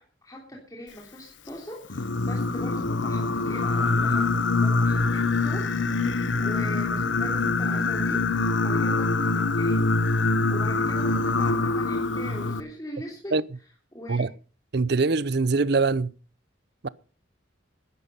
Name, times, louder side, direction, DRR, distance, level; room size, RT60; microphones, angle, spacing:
voice 1, 0.0-5.0 5.4-5.6 6.4-9.9 10.2-13.3 13.9-14.2, equal, 20° left, 3.2 m, -41 dB
Singing, 1.9-12.6, left 3 dB, 70° left, 1.0 m, -24 dB
voice 2, 14.7-16.1 16.8-16.9, right 4 dB, 55° right, 0.6 m, -23 dB
13.5 x 11.0 x 5.5 m
head